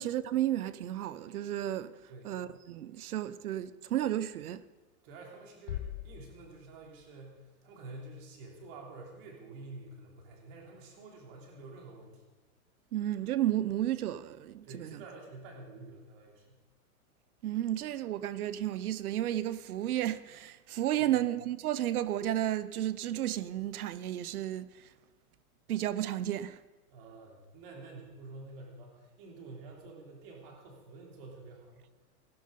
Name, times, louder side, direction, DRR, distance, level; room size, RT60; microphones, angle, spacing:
voice 1, 0.0-1.9 2.2-4.6 12.9-15.0 17.4-24.9 25.7-26.6, right 12 dB, 70° right, 0.9 m, -32 dB
voice 2, 5.0-12.2 14.6-16.6 21.0-21.2 26.9-31.9, right 3 dB, 35° right, 3.1 m, -49 dB
sound 1, 5.7-7.6, left 12 dB, 40° left, 0.6 m, -42 dB
16.5 x 11.5 x 5.2 m
supercardioid pair, 170°, 45 cm